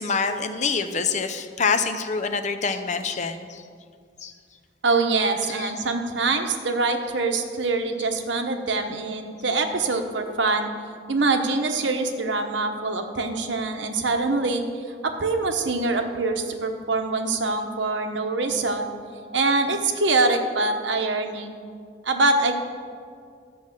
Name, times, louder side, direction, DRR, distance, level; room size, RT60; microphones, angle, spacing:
voice 1, 0.0-3.6 4.2-4.3 5.6-5.7, left 5 dB, 40° left, 8 dB, 0.6 m, -26 dB
voice 2, 4.8-10.7 11.1-18.9 19.3-21.5 22.0-22.5, right 3 dB, 75° right, 5 dB, 1.0 m, -24 dB
12.0 x 6.0 x 7.5 m, 2.2 s
head